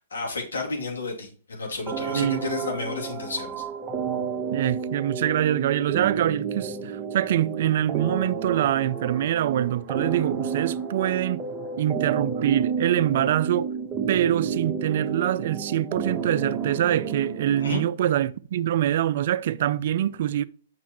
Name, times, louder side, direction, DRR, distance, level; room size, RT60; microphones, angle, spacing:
voice 1, 0.1-3.5 17.6-17.8, left 3 dB, 90° left, 2.6 m, -31 dB
sound 1, 1.9-17.9, right 6 dB, 20° right, 1.0 m, -31 dB
voice 2, 2.1-2.4 4.5-11.4 11.8-13.7 14.1-20.4, right 11 dB, 60° right, 0.4 m, -24 dB
7.3 x 6.1 x 3.0 m
hypercardioid pair, 130°, 0 cm